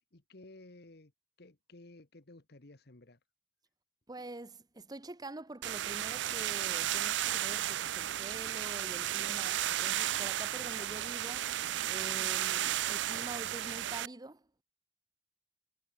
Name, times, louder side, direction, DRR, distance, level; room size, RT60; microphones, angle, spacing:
voice 1, 0.1-1.1 1.4-3.2, left 2 dB, 65° left, 1.5 m, -55 dB
voice 2, 4.1-11.6 11.9-14.6, right 2 dB, 20° right, 1.0 m, -46 dB
sound 1, 5.6-14.1, right 12 dB, 85° right, 0.4 m, -34 dB
head